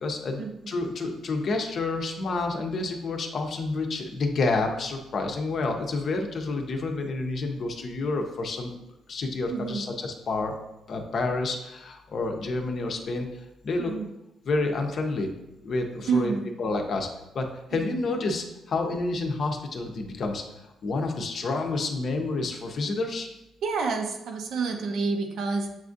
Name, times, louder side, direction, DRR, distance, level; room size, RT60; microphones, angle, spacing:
voice 1, 0.0-8.8 9.1-10.6 10.9-13.3 13.6-13.9 14.4-15.3 15.6-17.1 17.3-23.3, left 3 dB, 55° left, 4 dB, 0.6 m, -29 dB
voice 2, 9.5-9.9 13.8-14.1 16.1-16.5 17.7-17.9 23.6-25.7, right 4 dB, 75° right, 3 dB, 0.6 m, -29 dB
7.2 x 2.4 x 2.5 m, 0.92 s
cardioid pair, 90°, 0 cm